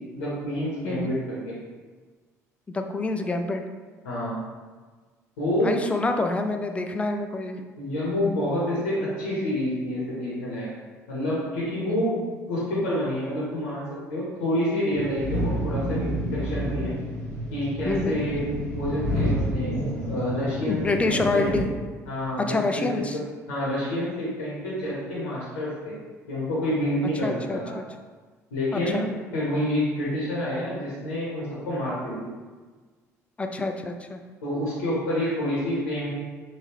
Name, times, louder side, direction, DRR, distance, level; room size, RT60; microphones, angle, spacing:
voice 1, 0.1-1.6 4.0-4.4 5.4-5.7 7.8-10.7 11.1-12.2 12.5-13.8 14.1-16.9 17.5-18.4 18.7-19.8 20.1-21.6 22.1-23.2 23.5-25.9 26.3-27.7 28.5-29.0 29.3-32.3 34.4-36.1, left 1 dB, 75° left, -8 dB, 0.9 m, -28 dB
voice 2, 2.7-3.6 5.6-7.6 11.9-12.2 17.9-18.2 20.7-21.7 22.5-23.2 27.2-27.8 28.9-29.1 33.4-34.2, left 2 dB, 15° left, 5 dB, 0.3 m, -27 dB
sound 1, 14.9-21.6, equal, 80° right, 0.9 m, -29 dB
3.4 x 2.7 x 2.9 m, 1.4 s
figure-of-eight pair, 55°, 8 cm